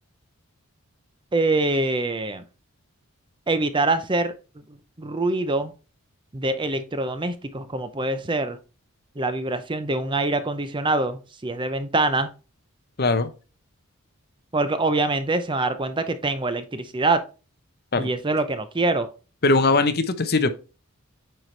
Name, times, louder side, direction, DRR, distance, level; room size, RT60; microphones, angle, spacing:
voice 1, 1.3-2.4 3.5-4.3 5.0-5.7 6.3-8.6 9.2-12.3 14.5-17.2 18.0-19.1, right 2 dB, 20° right, 0.6 m, -24 dB
voice 2, 13.0-13.3 17.9-18.1 19.4-20.5, left 3 dB, 45° left, 0.7 m, -20 dB
9.0 x 4.6 x 3.3 m
head